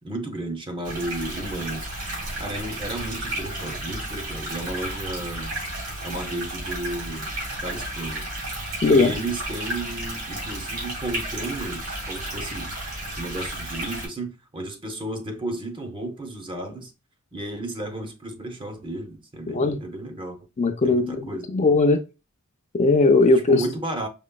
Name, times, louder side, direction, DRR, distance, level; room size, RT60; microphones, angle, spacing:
voice 1, 0.0-1.9 2.4-5.6 6.0-7.3 7.6-8.3 8.9-12.8 13.2-16.9 17.3-20.4 20.8-21.5 23.5-24.1, right 2 dB, 20° right, 0.7 m, -33 dB
sound 1, 0.8-14.1, right 1 dB, 80° right, 2.4 m, -32 dB
voice 2, 19.5-19.8 20.6-22.0 22.7-23.6, left 3 dB, 30° left, 0.4 m, -19 dB
5.1 x 3.0 x 2.2 m
head